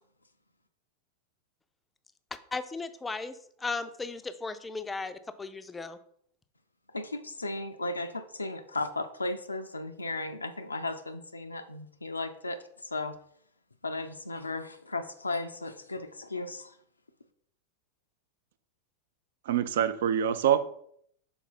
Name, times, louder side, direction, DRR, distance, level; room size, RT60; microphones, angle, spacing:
voice 1, 2.5-6.0, left 4 dB, 10° left, 11 dB, 0.4 m, -36 dB
voice 2, 6.9-13.1 13.8-16.7, left 2 dB, 80° left, 7 dB, 0.4 m, -35 dB
voice 3, 19.5-20.6, right 9 dB, 55° right, 12 dB, 0.4 m, -25 dB
5.9 x 4.1 x 4.1 m, 0.66 s
figure-of-eight pair, 90°, 0 cm